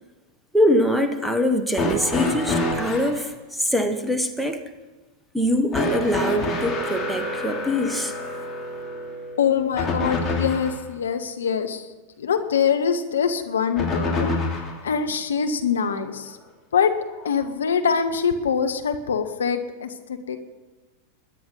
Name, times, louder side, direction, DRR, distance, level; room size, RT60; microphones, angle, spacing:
voice 1, 0.5-4.6 5.3-8.1, left 1 dB, ahead, 7 dB, 1.4 m, -23 dB
sound 1, 1.7-3.2 5.7-10.8 13.8-14.8 16.0-16.1 17.2-17.3, left 2 dB, 20° left, 2.9 m, -27 dB
voice 2, 9.4-11.8 12.2-14.3 14.8-16.4 16.7-16.9 17.2-20.4, left 6 dB, 65° left, 7 dB, 1.3 m, -24 dB
21.5 x 10.0 x 5.6 m, 1.2 s
figure-of-eight pair, 90°, 0 cm